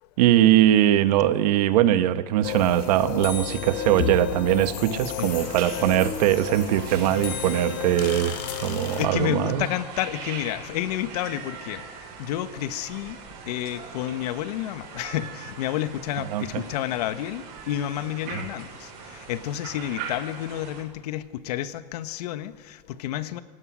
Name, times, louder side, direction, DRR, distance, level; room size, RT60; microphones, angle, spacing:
voice 1, 0.2-9.7 16.3-16.6 18.3-18.4, right 12 dB, 70° right, 12 dB, 1.4 m, -21 dB
sound 1, 2.4-9.1, left 9 dB, 55° left, 3.1 m, -32 dB
sound 2, 5.2-20.8, right 6 dB, 50° right, 6.9 m, -41 dB
voice 2, 8.9-11.9 12.2-13.2 13.5-23.4, left 13 dB, 70° left, 13 dB, 1.3 m, -30 dB
27.5 x 18.0 x 6.3 m, 1.4 s
supercardioid pair, 145°, 21 cm